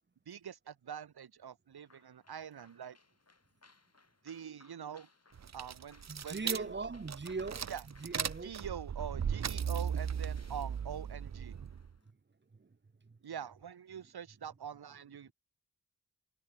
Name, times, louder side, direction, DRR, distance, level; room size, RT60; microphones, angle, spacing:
voice 1, 0.3-3.0 4.2-5.1 5.5-6.7 7.7-7.8 8.4-11.6 13.2-15.3, right 8 dB, 90° right, 0.9 m, -44 dB
sound 1, 1.9-12.1, left 3 dB, 40° left, 4.9 m, -67 dB
sound 2, 5.3-11.9, right 7 dB, 45° right, 0.6 m, -37 dB
voice 2, 6.1-7.7 8.0-8.6 12.5-12.7 13.0-13.2, right 4 dB, 30° right, 0.9 m, -40 dB
wide cardioid pair, 95°, 37 cm